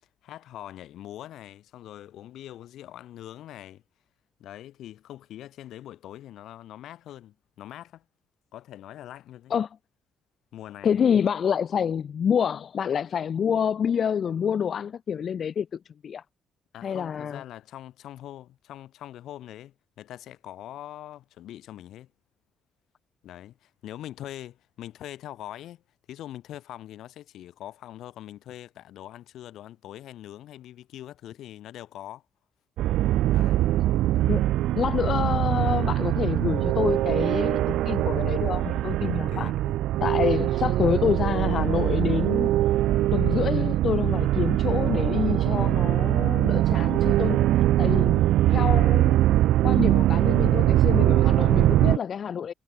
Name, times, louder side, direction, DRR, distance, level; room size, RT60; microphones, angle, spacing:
voice 1, 0.2-3.8 4.4-8.1 8.5-9.5 10.5-11.0 16.7-22.1 23.2-25.8 26.1-32.2 33.3-33.7 39.0-39.8, left 12 dB, 75° left, 3.4 m, -43 dB
voice 2, 10.8-15.7 16.0-16.2 16.8-17.4 34.3-34.4 34.7-39.5 40.0-42.5 43.1-47.5 47.8-49.2 49.6-52.5, left 7 dB, 50° left, 0.4 m, -27 dB
sound 1, 32.8-52.0, right 14 dB, 85° right, 0.4 m, -22 dB
cardioid pair, 105°, 0 cm